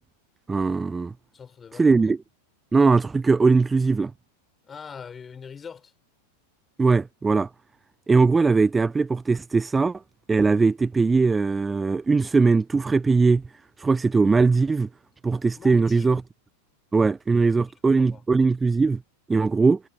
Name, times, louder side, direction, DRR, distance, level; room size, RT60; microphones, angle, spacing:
voice 1, 0.5-1.1 1.7-2.2 2.7-4.1 6.8-7.5 8.1-10.0 10.3-13.4 13.8-14.9 15.2-16.2 16.9-19.0 19.3-19.8, right 4 dB, 10° right, 0.8 m, -20 dB
voice 2, 1.3-2.0 4.6-5.9 15.6-16.3 17.6-18.2, left 6 dB, 20° left, 6.3 m, -43 dB
figure-of-eight pair, 90°, 0 cm